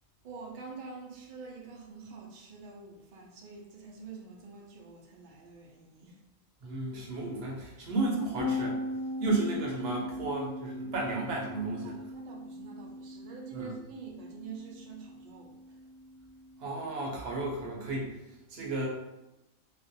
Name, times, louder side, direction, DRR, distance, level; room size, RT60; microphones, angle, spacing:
voice 1, 0.2-6.2 11.8-15.8, right 5 dB, 85° right, -1 dB, 0.4 m, -46 dB
voice 2, 6.6-8.8 9.2-12.0 13.5-13.7 16.6-18.1 18.5-18.9, right 2 dB, 60° right, -2 dB, 0.7 m, -33 dB
sound 1, 8.4-17.8, left 2 dB, 60° left, 0.8 m, -40 dB
2.4 x 2.1 x 2.6 m, 0.92 s
omnidirectional pair, 1.4 m